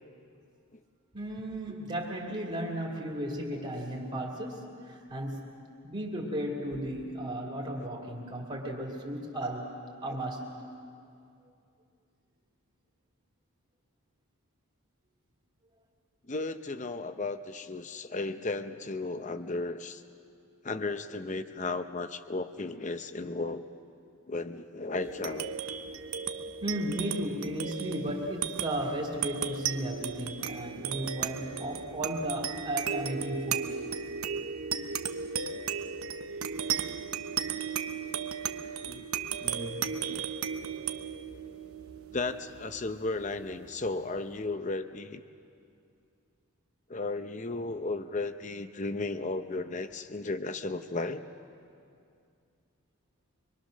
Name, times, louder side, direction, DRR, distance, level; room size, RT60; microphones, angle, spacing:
voice 1, 1.1-5.4 5.8-9.7 10.0-10.5 26.6-33.6, right 1 dB, 30° right, -2 dB, 2.4 m, -35 dB
voice 2, 16.3-20.0 20.6-23.7 24.3-25.5 27.0-27.2 38.8-39.0 39.4-40.2 42.1-45.2 46.9-51.3, left 3 dB, 35° left, 10 dB, 0.7 m, -35 dB
sound 1, 25.0-43.9, right 7 dB, 75° right, 0.9 m, -35 dB
25.0 x 23.0 x 6.4 m, 2.4 s
head